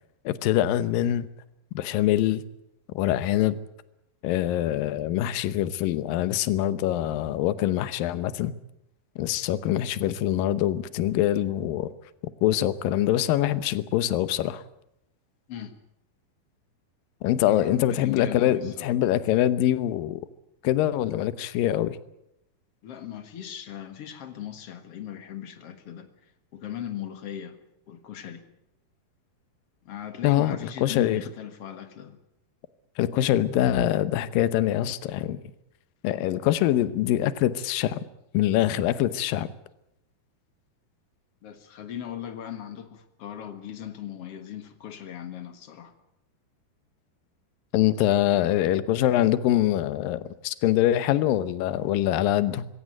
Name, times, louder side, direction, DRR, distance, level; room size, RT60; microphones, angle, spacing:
voice 1, 0.3-1.3 1.7-2.4 3.0-3.6 4.2-8.5 9.2-11.9 12.4-14.6 17.2-20.2 20.6-22.0 30.2-31.2 33.0-35.4 36.0-38.0 38.3-39.5 47.7-52.7, left 13 dB, 70° left, 14 dB, 2.5 m, -24 dB
voice 2, 17.4-18.9 22.8-27.6 27.9-28.4 29.8-32.2 41.4-45.9, left 10 dB, 50° left, 9 dB, 1.9 m, -38 dB
22.5 x 16.5 x 9.1 m, 0.81 s
omnidirectional pair, 4.5 m